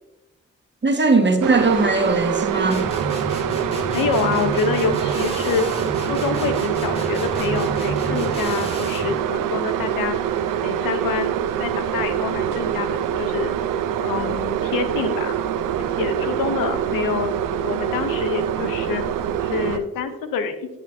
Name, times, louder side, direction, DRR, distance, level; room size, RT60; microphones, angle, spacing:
voice 1, 0.8-2.8, right 3 dB, 35° right, 1.5 m, -19 dB
sound 1, 1.4-19.8, right 9 dB, 75° right, 0.6 m, -25 dB
sound 2, 2.7-9.2, right 2 dB, 15° left, 2.4 m, -31 dB
voice 2, 3.9-13.6 14.0-15.3 15.9-17.4 17.6-19.0 19.4-20.7, left 6 dB, 85° left, 0.8 m, -27 dB
10.5 x 7.9 x 2.7 m
supercardioid pair, 40°, 33 cm